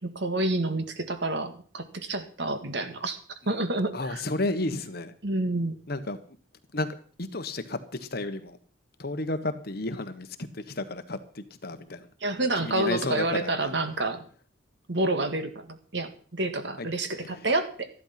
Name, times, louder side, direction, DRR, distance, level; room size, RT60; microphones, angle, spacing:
voice 1, 0.0-3.2 3.4-4.2 5.2-5.7 12.2-14.3 14.9-17.9, right 2 dB, 60° right, 9 dB, 1.8 m, -29 dB
voice 2, 3.9-5.1 5.9-6.2 6.7-6.9 7.2-8.6 9.0-12.1 12.6-13.6 16.8-16.9 17.2-17.4, left 2 dB, 50° left, 10 dB, 1.3 m, -32 dB
13.5 x 11.5 x 5.9 m, 0.43 s
head